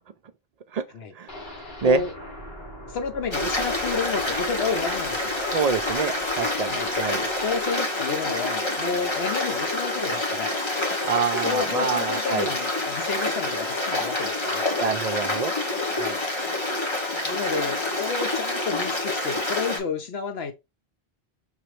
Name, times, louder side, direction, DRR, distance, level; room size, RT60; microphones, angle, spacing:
sound 1, 1.3-9.2 9.5-9.6 10.0-10.1, equal, 50° left, 1.3 m, -44 dB
voice 1, 1.8-2.1 2.9-5.4 6.7-6.9 7.4-10.5 11.4-14.7 15.9-16.2 17.2-20.5, left 5 dB, 75° left, 1.1 m, -31 dB
Stream, 3.3-19.8, left 2 dB, 30° left, 1.0 m, -27 dB
voice 2, 5.5-7.3 11.0-12.5 14.8-15.5, right 5 dB, 55° right, 0.5 m, -26 dB
5.5 x 3.0 x 3.1 m
omnidirectional pair, 1.1 m